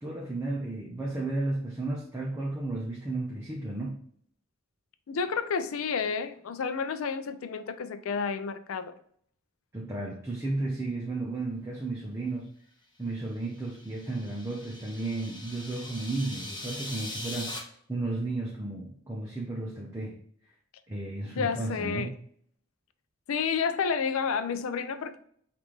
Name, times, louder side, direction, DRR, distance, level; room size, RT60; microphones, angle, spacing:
voice 1, 0.0-4.0 9.7-12.5 13.0-17.5 17.9-20.2 20.9-22.1, right 2 dB, 15° right, 0.6 m, -33 dB
voice 2, 5.1-8.9 21.3-22.1 23.3-25.2, left 6 dB, 80° left, 0.4 m, -30 dB
sound 1, 13.4-17.6, left 1 dB, 20° left, 1.0 m, -41 dB
5.2 x 2.5 x 3.1 m
head